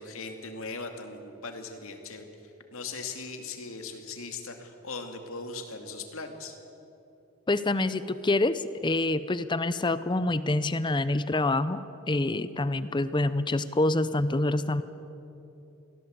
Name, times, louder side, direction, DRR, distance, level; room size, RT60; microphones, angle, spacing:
voice 1, 0.0-2.3 2.7-6.6, left 3 dB, 75° left, 5 dB, 2.4 m, -39 dB
voice 2, 7.5-14.8, left 2 dB, 20° left, 14 dB, 0.6 m, -26 dB
23.5 x 17.0 x 8.1 m, 2.8 s
head